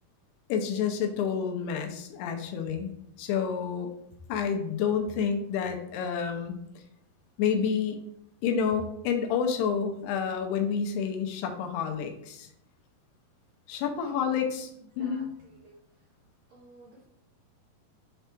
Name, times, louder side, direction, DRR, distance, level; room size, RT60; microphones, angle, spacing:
voice 1, 0.5-2.9 3.2-3.9 4.3-6.6 7.4-8.0 8.4-12.5 13.7-14.7 15.0-15.3, left 7 dB, 85° left, 4 dB, 2.8 m, -29 dB
voice 2, 13.9-14.5 15.0-15.7 16.5-17.1, right 1 dB, 65° right, -6 dB, 2.5 m, -53 dB
7.1 x 3.3 x 4.5 m, 0.76 s
omnidirectional pair, 4.6 m